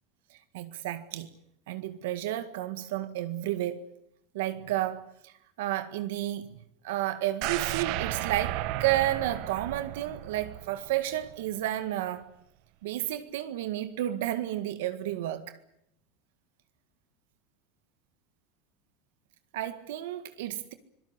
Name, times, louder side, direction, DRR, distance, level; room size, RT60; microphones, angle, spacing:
voice 1, 0.5-1.3 1.7-3.9 4.3-5.3 5.6-6.5 6.8-12.3 12.8-15.5 19.5-20.7, right 13 dB, 80° right, 1.7 m, -31 dB
sound 1, 7.4-11.4 11.7-11.8, right 15 dB, 60° right, 1.3 m, -34 dB
25.0 x 18.0 x 9.7 m
supercardioid pair, 145°, 0 cm